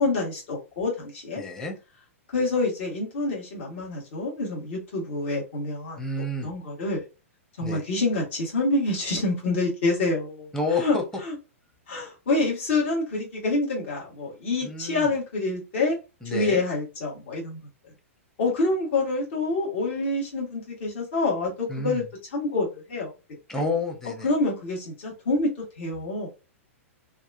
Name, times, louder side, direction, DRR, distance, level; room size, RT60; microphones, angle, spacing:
voice 1, 0.0-1.4 2.3-6.0 6.4-7.0 7.6-10.5 10.7-11.0 11.2-11.3 11.9-16.0 16.2-17.6 18.4-22.0 22.3-23.1 23.5-23.6 24.2-25.5 25.8-26.3, left 2 dB, 55° left, 1.4 m, -27 dB
voice 2, 1.4-1.8 6.0-6.5 7.6-7.8 10.5-11.0 14.6-15.1 16.2-16.6 21.7-22.0 23.5-24.3, left 2 dB, 5° left, 0.7 m, -29 dB
2.8 x 2.3 x 2.5 m
figure-of-eight pair, 105°, 8 cm